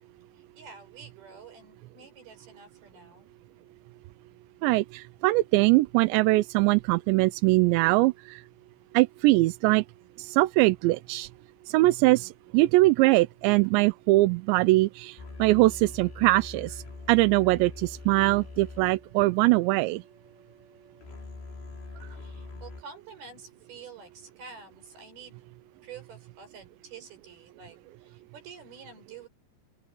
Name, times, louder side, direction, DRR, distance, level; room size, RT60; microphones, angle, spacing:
voice 1, 0.3-3.3 13.6-13.8 22.1-25.4 25.8-29.3, right 5 dB, 55° right, 6.9 m, -48 dB
voice 2, 4.6-8.4 8.9-9.8 10.2-11.3 11.7-16.8 17.1-20.0, right 20 dB, 85° right, 2.8 m, -22 dB
sound 1, 15.2-22.8, left 4 dB, 90° left, 8.7 m, -44 dB
open air
omnidirectional pair, 5.2 m